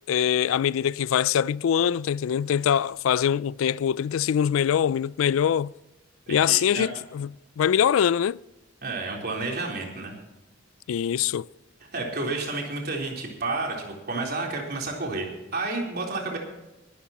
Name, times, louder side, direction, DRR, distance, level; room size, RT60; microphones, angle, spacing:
voice 1, 0.1-5.7 6.3-7.3 7.6-8.4 10.9-11.5, left 8 dB, 80° left, 0.3 m, -23 dB
voice 2, 6.3-6.9 8.8-10.1 11.9-16.4, right 3 dB, 50° right, 3.8 m, -31 dB
20.5 x 13.0 x 3.0 m
head